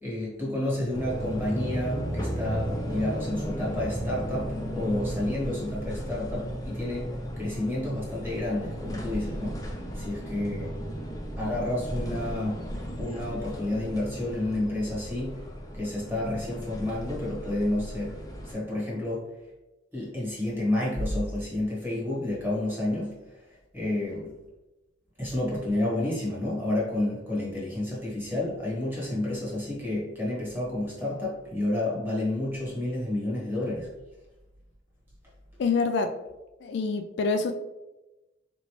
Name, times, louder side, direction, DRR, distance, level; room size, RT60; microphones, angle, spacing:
voice 1, 0.0-10.7 11.4-12.7 13.0-15.4 15.7-19.3 19.9-24.3 25.2-33.9, left 1 dB, 10° right, -5 dB, 1.3 m, -30 dB
sound 1, 0.9-18.5, equal, 20° left, 0.6 m, -35 dB
voice 2, 35.6-36.1 36.6-37.5, left 4 dB, 60° left, 6 dB, 0.3 m, -26 dB
4.0 x 3.1 x 3.1 m, 1.0 s
head